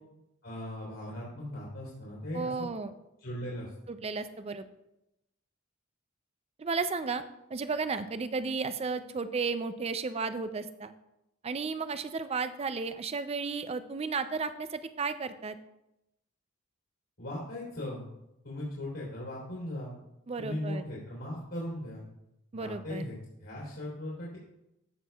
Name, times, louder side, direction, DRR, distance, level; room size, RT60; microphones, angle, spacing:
voice 1, 0.4-2.7 3.2-3.7 17.2-18.1 18.4-19.9 20.4-22.0 22.5-23.1 23.4-24.4, left 1 dB, 65° left, -6 dB, 3.3 m, -38 dB
voice 2, 2.3-2.9 3.9-4.7 6.6-7.2 7.5-10.9 11.4-15.6 20.3-20.8 22.5-23.0, right 4 dB, 30° right, 11 dB, 0.4 m, -33 dB
14.5 x 6.1 x 2.3 m, 0.89 s
head